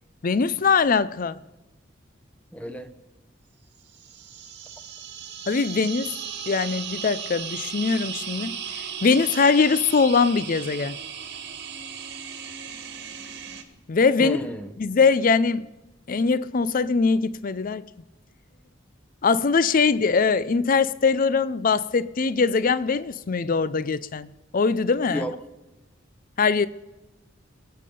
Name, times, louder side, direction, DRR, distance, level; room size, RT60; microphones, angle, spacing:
voice 1, 0.2-1.4 5.5-6.1 6.5-11.0 13.9-14.5 14.8-15.7 16.1-17.8 19.2-24.3 24.5-25.3 26.4-26.7, left 5 dB, 45° left, 0.5 m, -22 dB
voice 2, 2.5-2.9 14.2-14.7 25.1-25.3, equal, 5° left, 0.8 m, -31 dB
sound 1, 3.9-13.6, right 8 dB, 60° right, 1.6 m, -36 dB
22.0 x 8.5 x 5.3 m
head